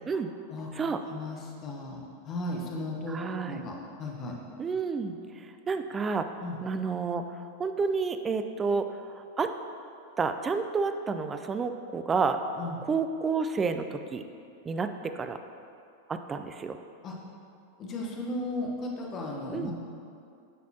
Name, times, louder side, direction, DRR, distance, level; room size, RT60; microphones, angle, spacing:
voice 1, 1.1-3.2 3.4-4.4 6.4-6.6 12.6-12.8 17.0-17.1 17.8-19.7, left 2 dB, 30° left, -1 dB, 0.9 m, -35 dB
voice 2, 3.1-3.6 4.6-5.2 5.7-6.3 6.6-7.2 7.6-8.9 9.1-9.5 10.2-12.4 12.8-14.2 14.7-15.4 16.1-16.8 19.5-19.7, right 5 dB, 20° right, 8 dB, 0.3 m, -30 dB
8.3 x 4.1 x 2.8 m, 2.5 s
figure-of-eight pair, 90°, 0 cm